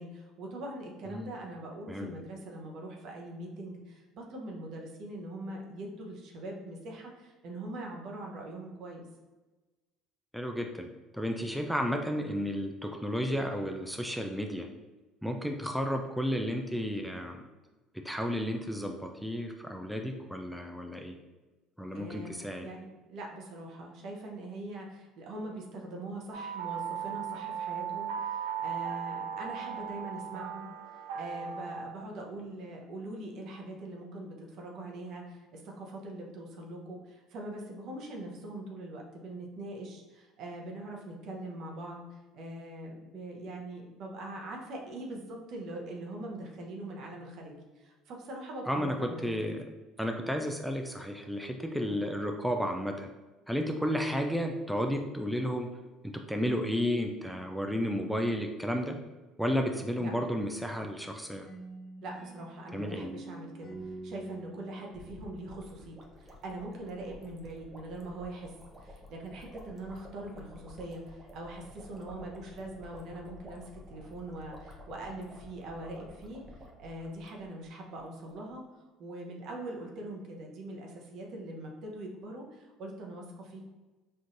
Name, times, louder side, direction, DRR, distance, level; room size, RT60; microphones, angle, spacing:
voice 1, 0.0-9.0 21.9-49.4 60.0-60.1 62.0-78.6 79.0-83.7, right 1 dB, 60° right, 0 dB, 0.8 m, -42 dB
voice 2, 10.3-10.9 11.1-14.7 15.2-17.4 17.9-21.2 21.8-22.7 48.7-49.6 50.0-53.1 53.5-55.7 56.0-59.0 59.4-61.5 62.7-63.1, equal, ahead, 3 dB, 0.4 m, -32 dB
sound 1, 26.3-31.8, right 8 dB, 80° right, 0.3 m, -37 dB
sound 2, 61.4-66.3, right 2 dB, 65° left, 1.2 m, -47 dB
sound 3, 64.9-77.7 78.0-78.1 78.3-78.5, left 1 dB, 25° right, 0.8 m, -51 dB
4.4 x 2.6 x 2.5 m, 1.2 s
hypercardioid pair, 75°, 0 cm